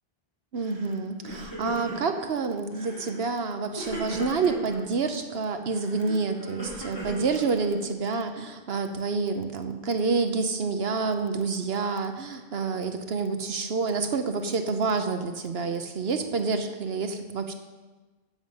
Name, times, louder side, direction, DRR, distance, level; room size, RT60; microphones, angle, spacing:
voice 1, 0.5-17.5, right 4 dB, 75° right, 7 dB, 1.1 m, -28 dB
Crying sobbing, 0.6-0.9 1.2-2.2 2.7-3.2 3.8-4.8 5.7-7.9, equal, 25° left, 4.2 m, -38 dB
13.5 x 8.1 x 5.4 m, 1.2 s
omnidirectional pair, 1.0 m